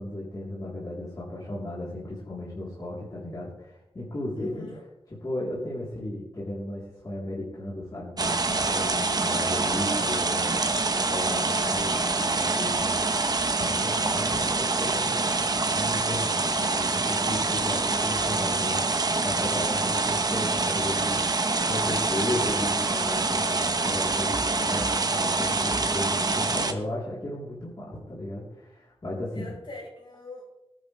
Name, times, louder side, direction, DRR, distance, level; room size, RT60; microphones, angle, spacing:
voice 1, 0.0-4.7 5.1-13.0 13.5-21.2 21.6-29.5, left 1 dB, 35° left, -7 dB, 3.7 m, -35 dB
voice 2, 4.4-4.8 17.6-18.2 24.5-25.0 29.3-30.6, left 2 dB, 50° left, -2 dB, 5.2 m, -43 dB
sound 1, 8.2-26.7, right 3 dB, 40° right, 1.0 m, -26 dB
20.0 x 10.5 x 3.4 m, 0.91 s
wide cardioid pair, 110°, 10 cm